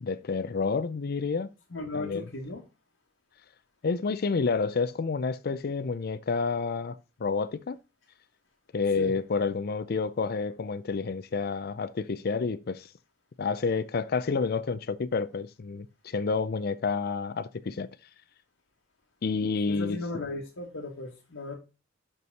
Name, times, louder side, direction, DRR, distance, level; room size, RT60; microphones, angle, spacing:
voice 1, 0.0-1.5 1.9-2.2 3.8-7.8 8.7-12.9 13.4-17.9 19.2-20.0, left 4 dB, 50° left, 0.5 m, -29 dB
voice 2, 1.7-2.6 9.0-9.2 19.5-21.6, left 2 dB, 85° left, 1.6 m, -36 dB
6.1 x 5.5 x 5.4 m
head